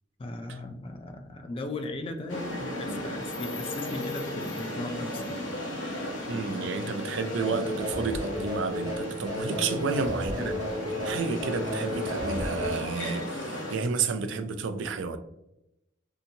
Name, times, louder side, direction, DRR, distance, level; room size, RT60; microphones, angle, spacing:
voice 1, 0.2-5.4 9.5-9.7, left 2 dB, 30° left, 6 dB, 0.3 m, -37 dB
sound 1, 2.3-13.7, left 1 dB, 90° left, 0.9 m, -35 dB
voice 2, 6.3-10.5 10.9-15.2, right 4 dB, 75° right, 9 dB, 0.4 m, -31 dB
sound 2, 7.4-12.7, left 1 dB, 20° right, 0.6 m, -33 dB
2.8 x 2.6 x 2.6 m, 0.85 s
head